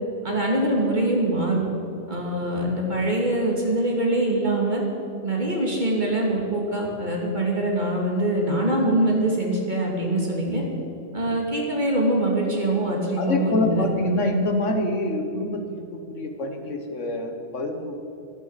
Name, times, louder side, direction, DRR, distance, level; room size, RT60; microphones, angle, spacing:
voice 1, 0.2-1.6 2.1-4.8 5.2-10.6 11.1-13.9, right 1 dB, 35° right, -1 dB, 2.7 m, -23 dB
voice 2, 13.2-18.0, left 1 dB, 65° left, 5 dB, 1.7 m, -26 dB
13.5 x 13.5 x 5.8 m, 3.0 s
omnidirectional pair, 1.4 m